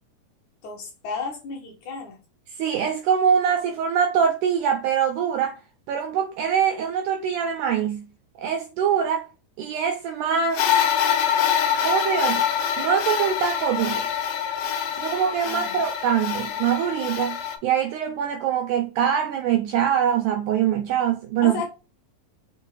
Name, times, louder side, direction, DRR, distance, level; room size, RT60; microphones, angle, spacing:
voice 1, 0.6-2.2 15.5-15.8 21.4-21.7, left 4 dB, 70° left, 2.0 m, -33 dB
voice 2, 2.5-5.6 5.9-8.0 8.4-9.3 9.6-10.7 11.8-12.4 12.8-14.1 14.9-17.4 17.6-21.7, right 8 dB, 90° right, 1.8 m, -23 dB
sound 1, 10.5-17.6, left 9 dB, 85° left, 2.5 m, -25 dB
6.1 x 2.5 x 3.1 m
omnidirectional pair, 4.1 m